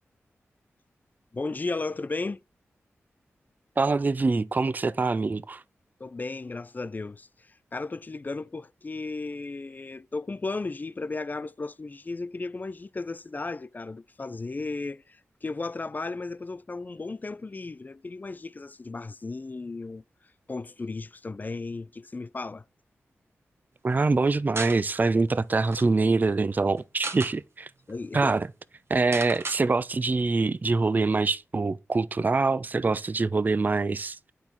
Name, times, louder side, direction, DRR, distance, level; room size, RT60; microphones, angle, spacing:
voice 1, 1.3-2.4 6.0-20.0 20.5-22.6 27.9-28.3, left 3 dB, 35° left, 0.3 m, -35 dB
voice 2, 3.8-5.6 23.8-27.7 28.1-28.5 28.9-34.2, right 3 dB, 35° right, 0.4 m, -24 dB
sound 1, 24.5-24.8 25.3-25.4 25.6-25.9 26.8-27.3 27.9-28.0 28.2-28.4 29.1-29.6, right 3 dB, 55° right, 1.2 m, -35 dB
7.9 x 4.3 x 3.9 m
cardioid pair, 40°, 5 cm